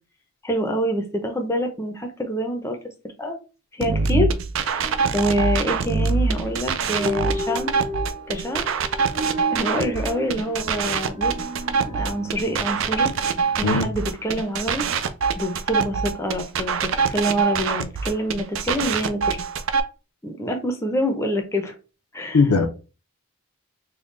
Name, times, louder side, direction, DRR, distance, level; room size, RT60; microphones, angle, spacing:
voice 1, 0.4-2.8 3.2-3.4 3.7-4.3 5.1-7.7 8.3-8.6 9.5-11.3 11.9-13.1 13.6-14.8 15.4-19.4 20.2-21.7 22.1-22.4, equal, 15° left, 0.5 m, -26 dB
sound 1, 3.8-19.8, right 5 dB, 60° right, 0.4 m, -24 dB
sound 2, 4.7-14.8, left 1 dB, 80° right, 1.6 m, -35 dB
voice 2, 22.3-22.7, left 4 dB, 80° left, 0.6 m, -18 dB
3.6 x 2.2 x 3.7 m
head